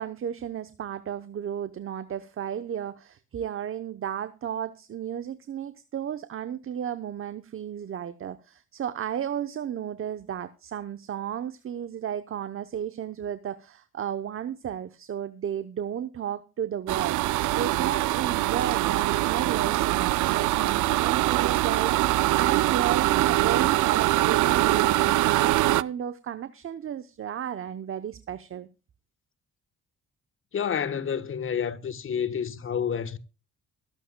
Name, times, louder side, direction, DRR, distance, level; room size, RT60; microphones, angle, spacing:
voice 1, 0.0-28.7, right 9 dB, 45° right, 0.8 m, -33 dB
sound 1, 16.9-25.8, right 16 dB, 75° right, 0.5 m, -23 dB
voice 2, 30.5-33.2, left 7 dB, 45° left, 1.2 m, -29 dB
23.0 x 8.3 x 2.2 m
cardioid pair, 90°, 30 cm